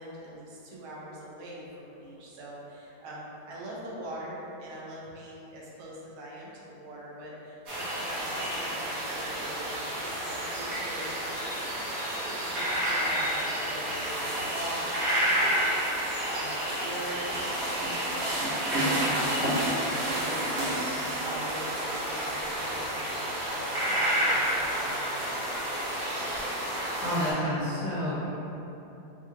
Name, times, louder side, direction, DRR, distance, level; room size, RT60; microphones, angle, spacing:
voice 1, 0.0-19.6 19.8-25.6 26.0-26.5, right 1 dB, 85° right, -5 dB, 1.6 m, -43 dB
sound 1, 7.7-27.3, right 1 dB, 55° right, 1.0 m, -30 dB
voice 2, 27.0-28.3, equal, 65° left, -10 dB, 1.8 m, -29 dB
4.5 x 2.5 x 2.7 m, 3.0 s
omnidirectional pair, 2.3 m